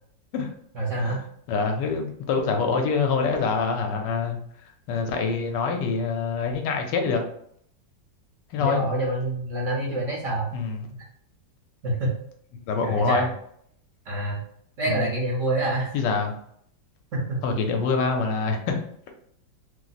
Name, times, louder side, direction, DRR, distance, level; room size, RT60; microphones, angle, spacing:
voice 1, 0.7-1.2 8.6-10.5 10.9-11.0 11.8-12.1 12.8-13.3 14.1-14.4 14.8-16.0 17.1-17.4, right 1 dB, 55° right, -3 dB, 0.9 m, -27 dB
voice 2, 1.5-4.4 4.9-7.2 8.5-8.8 10.5-10.9 12.7-13.3 14.9-15.1 15.9-16.4 17.4-18.8, left 4 dB, 80° left, 3 dB, 1.2 m, -25 dB
3.0 x 2.0 x 3.9 m, 0.67 s
omnidirectional pair, 1.9 m